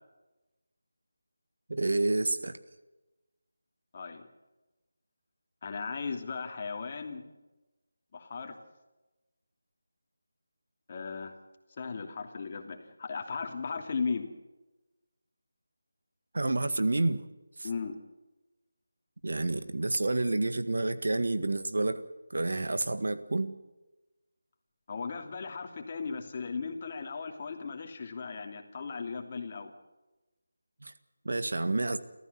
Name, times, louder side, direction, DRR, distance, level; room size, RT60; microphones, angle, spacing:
voice 1, 1.7-2.6 16.3-17.3 17.6-17.7 19.2-23.6 30.8-30.9 31.3-32.0, right 2 dB, 65° right, 11 dB, 1.8 m, -29 dB
voice 2, 3.9-4.3 5.6-7.2 8.1-8.5 10.9-11.3 11.8-14.3 17.6-18.0 24.9-29.7, left 5 dB, 35° left, 4 dB, 2.9 m, -36 dB
29.0 x 14.5 x 7.0 m, 1.1 s
figure-of-eight pair, 165°, 0 cm